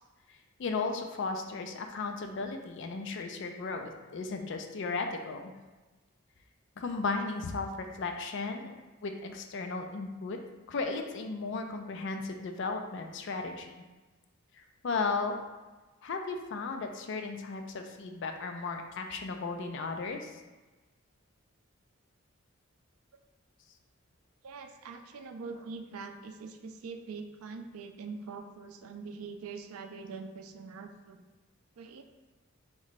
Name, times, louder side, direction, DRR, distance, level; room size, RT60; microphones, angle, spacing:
voice 1, 0.6-5.5 6.8-10.4 10.7-13.8 14.8-15.4 16.0-20.3, left 4 dB, 60° left, 4 dB, 0.4 m, -35 dB
voice 2, 24.4-31.2 31.8-32.0, right 4 dB, 85° right, 6 dB, 0.4 m, -43 dB
3.1 x 3.0 x 4.0 m, 1.2 s
head